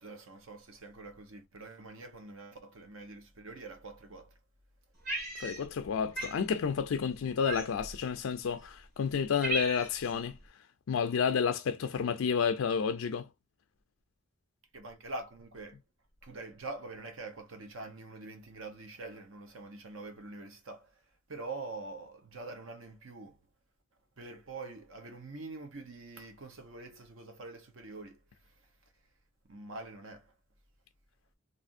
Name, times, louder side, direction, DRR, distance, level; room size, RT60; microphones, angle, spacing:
voice 1, 0.0-4.3 14.7-15.8 16.2-20.9 21.3-23.4 24.2-28.2 28.4-28.5 29.5-30.3, right 3 dB, 75° right, 0.9 m, -45 dB
Cat, 5.1-5.9 6.2-6.4 7.5-8.0 8.7-8.8 9.1-10.1, right 2 dB, 45° right, 1.6 m, -36 dB
voice 2, 5.4-10.4 10.9-13.3, left 6 dB, 90° left, 0.4 m, -30 dB
3.3 x 2.5 x 2.5 m
head